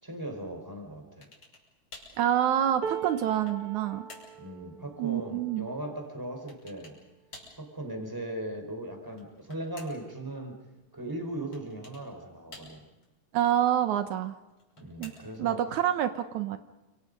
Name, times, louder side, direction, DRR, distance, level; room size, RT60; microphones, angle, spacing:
voice 1, 0.0-1.3 4.4-6.9 7.6-10.6 10.9-12.8 14.8-15.6, right 1 dB, 5° right, 3 dB, 4.4 m, -38 dB
sound 1, 1.2-1.7 1.9-2.2 2.8-3.7 4.1-4.4 6.5-7.0 7.3-7.6 9.0-10.1 11.5-12.1 12.5-13.1 14.5-15.5, left 2 dB, 50° left, 7.0 m, -50 dB
voice 2, 2.2-4.1 5.0-5.7 13.3-14.4 15.0-15.1 15.4-16.6, right 10 dB, 80° right, 9 dB, 2.4 m, -27 dB
sound 2, 2.8-9.0 9.5-9.7 10.0-10.8 11.8-11.9, right 8 dB, 55° right, 1.9 m, -43 dB
29.5 x 27.0 x 5.4 m, 1.0 s
omnidirectional pair, 3.4 m